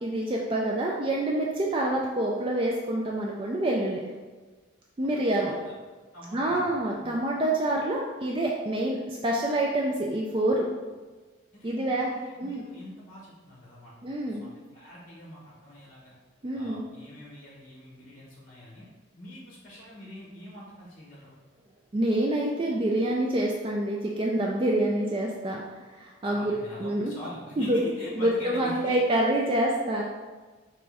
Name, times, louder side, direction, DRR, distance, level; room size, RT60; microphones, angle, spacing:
voice 1, 0.0-4.0 5.0-5.5 6.3-10.7 11.6-12.1 12.4-12.6 14.0-14.4 16.4-16.8 21.9-25.6 26.0-26.5 26.8-27.1 27.6-27.8 28.2-30.0, right 1 dB, 25° right, -1 dB, 0.3 m, -27 dB
voice 2, 5.1-6.7 7.0-7.1 11.5-16.1 16.5-18.8 19.2-21.4 26.3-29.0, equal, 45° left, -5 dB, 1.0 m, -44 dB
3.5 x 3.1 x 4.7 m, 1.3 s
head